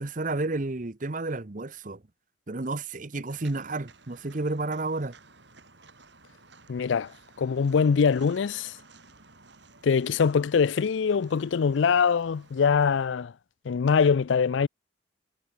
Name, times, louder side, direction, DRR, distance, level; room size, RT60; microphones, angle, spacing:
voice 1, 0.0-2.0 2.5-5.1, right 2 dB, 40° right, 0.9 m, -31 dB
Walk footsteps, 3.3-12.6, right 3 dB, 65° right, 7.4 m, -55 dB
voice 2, 6.7-8.8 9.8-13.3 13.7-14.7, left 6 dB, 70° left, 0.4 m, -23 dB
head